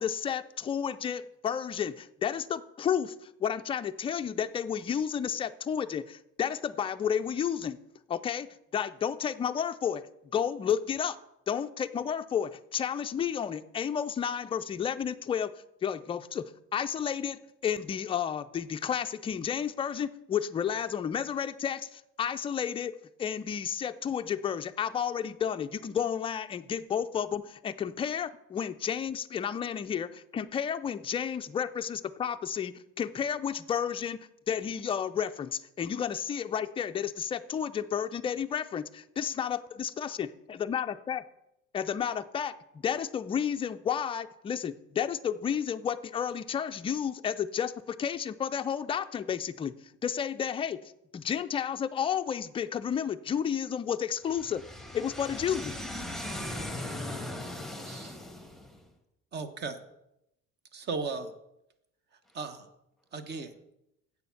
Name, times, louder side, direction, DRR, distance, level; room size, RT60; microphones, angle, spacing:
voice 1, 0.0-7.8 8.1-8.5 8.7-10.0 10.3-11.2 11.5-15.5 15.8-16.4 16.7-22.9 23.2-34.2 34.5-40.3 40.6-41.2 41.7-42.5 42.8-49.7 50.0-54.6 54.9-55.7, left 8 dB, 20° left, 9 dB, 0.3 m, -31 dB
voice 2, 54.3-58.6, left 1 dB, ahead, 4 dB, 1.2 m, -38 dB
voice 3, 59.3-59.8 60.7-61.3 62.3-62.7 63.1-63.5, right 4 dB, 35° right, 11 dB, 0.9 m, -36 dB
8.1 x 6.8 x 7.0 m, 0.85 s
cardioid pair, 155°, 29 cm